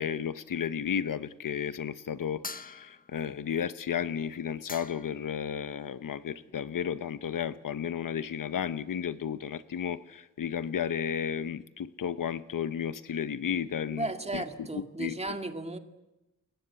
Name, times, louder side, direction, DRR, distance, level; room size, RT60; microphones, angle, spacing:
voice 1, 0.0-14.4 14.7-15.3, left 8 dB, 80° left, 14 dB, 1.0 m, -33 dB
sound 1, 2.4-3.3 4.3-4.4 4.7-5.3, left 4 dB, 25° left, 1.1 m, -43 dB
voice 2, 13.9-15.8, right 2 dB, 20° right, 6 dB, 2.2 m, -35 dB
29.0 x 22.0 x 8.3 m, 0.96 s
wide cardioid pair, 130°, 32 cm